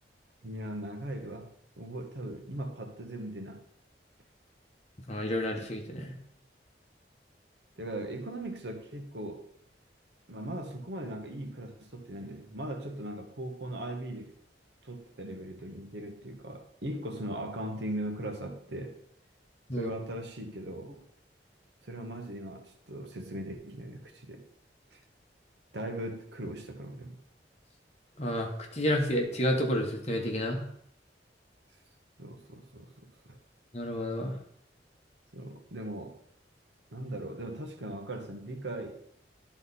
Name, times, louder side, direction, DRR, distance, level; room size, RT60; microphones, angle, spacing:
voice 1, 0.4-1.5 1.8-3.6 7.8-9.5 10.3-14.3 14.8-19.0 19.7-21.0 21.8-24.5 24.9-25.0 25.7-27.2 32.2-33.4 35.3-36.2 36.9-39.0, right 1 dB, 75° right, 5 dB, 1.1 m, -39 dB
voice 2, 5.1-6.1 19.7-19.9 28.2-30.6 33.7-34.3, equal, 35° left, 2 dB, 1.3 m, -30 dB
11.0 x 4.1 x 4.1 m, 0.68 s
head